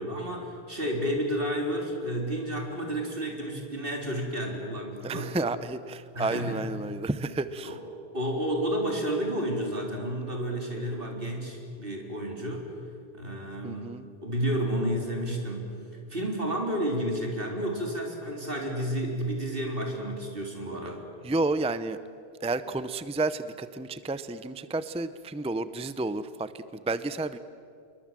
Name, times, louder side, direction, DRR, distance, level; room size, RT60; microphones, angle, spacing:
voice 1, 0.0-5.3 6.1-6.6 7.6-7.8 8.1-12.7 13.1-13.9 14.2-15.7 16.1-21.0, equal, 60° right, 1 dB, 4.2 m, -31 dB
voice 2, 5.0-7.8 13.6-14.1 21.2-22.0 22.4-27.4, right 2 dB, 5° right, 13 dB, 0.6 m, -31 dB
28.5 x 22.5 x 7.6 m, 2.4 s
omnidirectional pair, 1.1 m